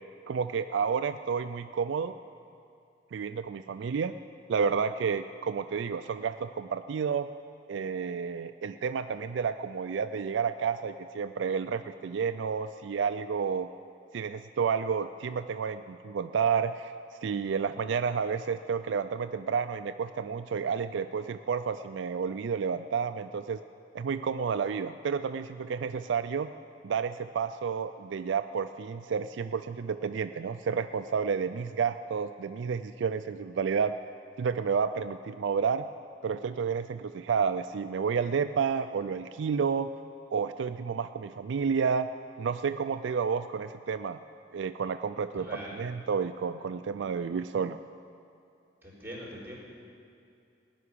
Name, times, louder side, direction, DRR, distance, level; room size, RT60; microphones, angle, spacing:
voice 1, 0.3-2.2 3.1-4.1 4.5-7.3 7.7-13.7 14.1-16.9 17.2-23.6 23.9-26.5 26.8-33.9 34.4-35.9 36.2-39.9 40.3-42.1 42.4-44.2 44.5-45.5 45.7-47.8, right 6 dB, 65° right, 10 dB, 0.4 m, -30 dB
voice 2, 45.4-45.8 48.8-49.6, equal, 10° right, -5 dB, 4.1 m, -42 dB
17.5 x 5.9 x 9.9 m, 2.6 s
head